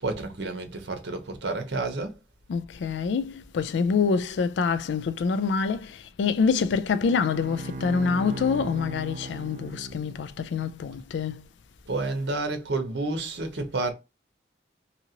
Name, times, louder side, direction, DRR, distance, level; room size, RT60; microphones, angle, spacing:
voice 1, 0.0-2.2 11.9-13.9, right 2 dB, 80° right, 0.8 m, -30 dB
voice 2, 2.5-11.5, left 5 dB, 85° left, 0.3 m, -26 dB
Bowed string instrument, 7.0-10.5, right 1 dB, 45° right, 0.3 m, -38 dB
2.8 x 2.6 x 2.8 m
head